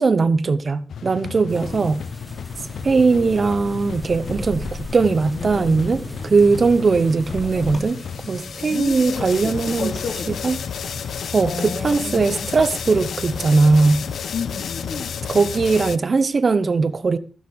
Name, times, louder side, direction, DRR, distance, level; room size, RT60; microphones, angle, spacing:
voice 1, 0.0-2.0 2.8-8.0 8.3-9.9 10.4-10.5 11.3-14.0 15.3-17.2, right 4 dB, 35° right, 0.9 m, -19 dB
sound 1, 0.9-16.0, left 7 dB, 85° left, 0.6 m, -32 dB
voice 2, 1.5-2.1 8.5-10.6 11.2-12.6 14.3-15.1, left 4 dB, 60° left, 3.5 m, -32 dB
sound 2, 1.5-14.2, equal, ahead, 1.2 m, -41 dB
Wind, 2.3-7.8, left 1 dB, 30° left, 3.1 m, -36 dB
15.5 x 6.6 x 6.9 m
wide cardioid pair, 155°, 0 cm